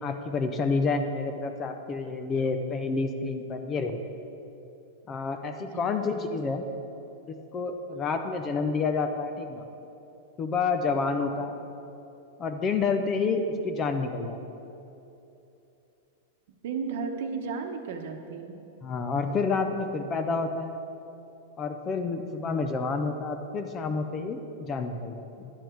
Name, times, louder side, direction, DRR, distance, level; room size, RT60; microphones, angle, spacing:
voice 1, 0.0-4.0 5.1-6.6 7.3-9.6 10.4-11.6 12.4-14.4 18.8-20.8 21.6-25.5, left 4 dB, 20° left, 7 dB, 0.5 m, -29 dB
voice 2, 16.6-18.6, right 5 dB, 55° right, 5 dB, 1.0 m, -34 dB
10.5 x 9.1 x 4.5 m, 2.8 s
supercardioid pair, 170°, 0 cm